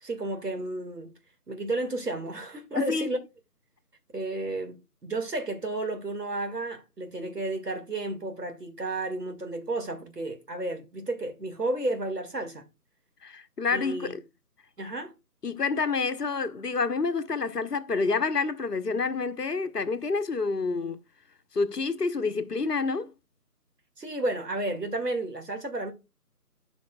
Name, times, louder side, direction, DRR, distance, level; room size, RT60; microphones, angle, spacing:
voice 1, 0.0-1.1 1.5-3.2 4.1-12.6 13.7-14.2 14.8-15.1 24.0-25.9, right 2 dB, 80° right, 2.1 m, -32 dB
voice 2, 2.7-3.1 13.2-14.2 15.4-21.0 21.5-23.1, left 4 dB, 80° left, 1.1 m, -28 dB
12.0 x 5.2 x 2.3 m
figure-of-eight pair, 165°, 47 cm